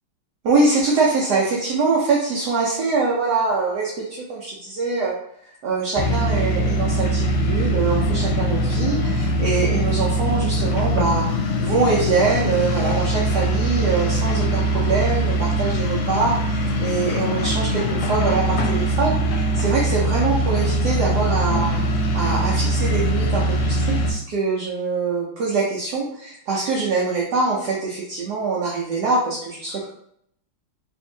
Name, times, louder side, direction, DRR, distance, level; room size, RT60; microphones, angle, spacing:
voice 1, 0.4-5.1 5.6-11.3 11.6-29.9, right 4 dB, 65° right, -4 dB, 1.0 m, -23 dB
sound 1, 6.0-24.1, right 1 dB, 85° left, 1.4 m, -22 dB
3.5 x 3.0 x 2.6 m, 0.70 s
omnidirectional pair, 2.3 m